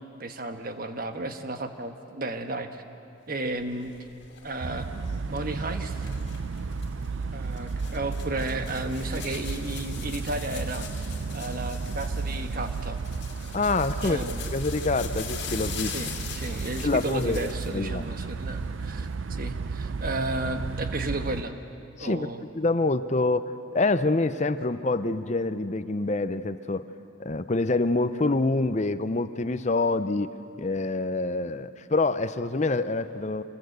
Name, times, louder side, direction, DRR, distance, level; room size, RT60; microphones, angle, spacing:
voice 1, 0.0-2.8 3.3-4.0 4.4-4.9 5.3-6.1 7.3-13.0 14.0-14.5 15.8-21.5 22.0-22.5, right 2 dB, 45° right, 7 dB, 1.3 m, -33 dB
sound 1, 3.5-17.8 18.2-19.1, left 8 dB, 55° left, 2.6 m, -42 dB
sound 2, 4.6-21.4, right 4 dB, 75° right, 0.5 m, -33 dB
voice 2, 13.5-14.2 14.5-15.9 16.8-18.0 22.0-22.3 22.5-26.8 27.2-30.3 30.6-33.4, left 3 dB, 35° left, 12 dB, 0.6 m, -26 dB
26.0 x 22.0 x 8.0 m, 2.6 s
head